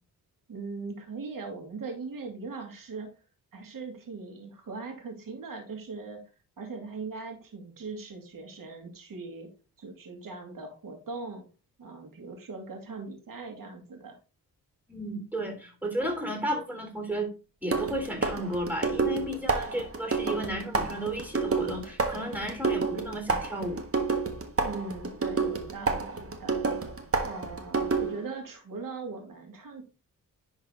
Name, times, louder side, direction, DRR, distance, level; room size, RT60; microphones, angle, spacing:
voice 1, 0.5-3.1 3.5-6.2 6.6-9.5 9.8-11.4 11.8-14.2 24.6-26.8 27.2-29.8, right 4 dB, 70° right, 3 dB, 2.5 m, -40 dB
voice 2, 14.9-17.3 17.6-23.8, right 1 dB, 5° right, 3 dB, 3.6 m, -33 dB
sound 1, 16.0-16.2 17.7-28.3, right 4 dB, 40° right, 1.5 m, -29 dB
10.5 x 4.0 x 3.9 m, 0.33 s
cardioid pair, 80°, 35 cm